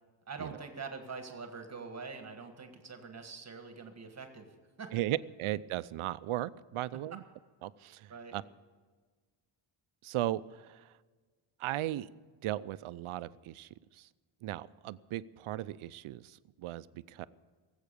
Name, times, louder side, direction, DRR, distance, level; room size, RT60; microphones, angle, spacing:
voice 1, 0.3-4.5 4.8-4.9 8.1-8.4, right 4 dB, 30° right, 6 dB, 1.7 m, -44 dB
voice 2, 4.9-7.2 7.6-8.4 10.0-10.9 11.6-12.1 12.4-14.1 14.4-17.3, right 14 dB, 80° right, 16 dB, 0.6 m, -37 dB
18.5 x 8.3 x 6.8 m, 1.4 s
wide cardioid pair, 160°, 49 cm